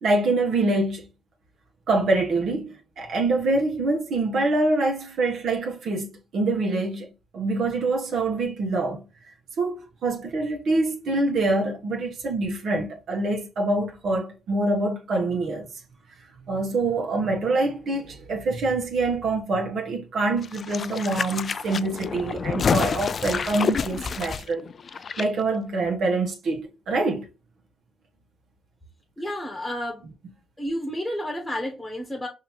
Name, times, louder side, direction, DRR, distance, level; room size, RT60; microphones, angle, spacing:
voice 1, 0.0-1.1 1.9-7.1 7.3-9.0 9.6-9.8 10.0-15.7 16.5-24.7 25.2-27.3, right 2 dB, 65° right, 1.3 m, -25 dB
sound 1, 20.4-25.3 25.5-25.6, left 6 dB, 45° left, 0.3 m, -28 dB
voice 2, 29.2-30.0 30.6-32.3, equal, 5° left, 1.2 m, -30 dB
5.3 x 2.9 x 2.8 m
cardioid pair, 90°, 0 cm